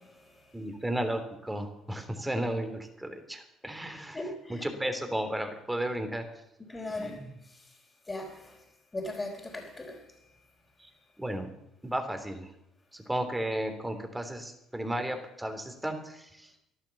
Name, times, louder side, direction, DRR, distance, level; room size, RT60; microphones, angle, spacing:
voice 1, 0.0-0.6 4.1-4.7 6.6-7.8 8.1-8.6 8.9-10.3, left 2 dB, 20° left, -5 dB, 4.0 m, -40 dB
voice 2, 0.5-4.2 4.5-6.2 7.0-7.3 10.8-10.9 11.2-11.5 11.8-12.5 12.9-16.5, right 1 dB, 10° right, 6 dB, 3.3 m, -34 dB
14.5 x 11.5 x 7.3 m, 0.80 s
hypercardioid pair, 65°, 0 cm